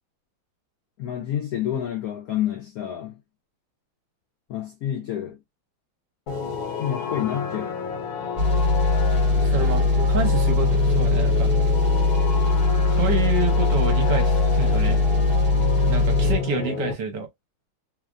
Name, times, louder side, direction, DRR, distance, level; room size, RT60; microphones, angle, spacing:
voice 1, 1.0-3.2 4.5-5.4 6.8-7.9, left 10 dB, 80° left, 0.8 m, -29 dB
sound 1, 6.3-16.9, left 5 dB, 60° left, 1.1 m, -30 dB
sound 2, 8.4-16.4, left 3 dB, 45° right, 1.3 m, -20 dB
voice 2, 9.4-11.5 12.9-15.0 15.9-17.3, right 4 dB, 65° right, 1.4 m, -28 dB
3.2 x 2.1 x 2.4 m
omnidirectional pair, 2.1 m